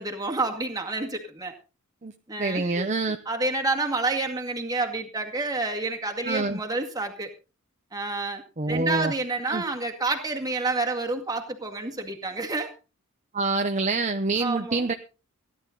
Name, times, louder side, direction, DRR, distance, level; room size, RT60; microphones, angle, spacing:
voice 1, 0.0-1.5 2.3-2.9 3.3-7.3 7.9-8.4 8.7-12.7 14.4-14.9, right 3 dB, 15° right, 3 dB, 2.1 m, -29 dB
voice 2, 2.4-3.2 6.2-6.6 8.6-9.1 9.4-9.6 13.3-14.9, right 3 dB, 35° right, 7 dB, 0.8 m, -26 dB
17.0 x 11.5 x 3.9 m, 0.32 s
head